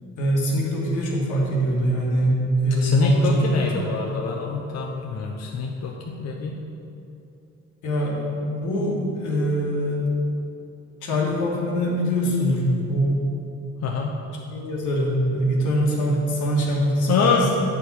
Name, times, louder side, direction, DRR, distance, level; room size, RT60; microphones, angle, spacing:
voice 1, 0.2-3.5 3.9-4.0 7.8-10.1 11.0-13.2 14.5-17.3, equal, 85° left, -3 dB, 1.5 m, -23 dB
voice 2, 2.8-6.6 13.8-14.1 17.1-17.5, left 5 dB, 55° left, 0 dB, 0.7 m, -25 dB
8.5 x 4.7 x 4.2 m, 2.8 s
cardioid pair, 90°, 30 cm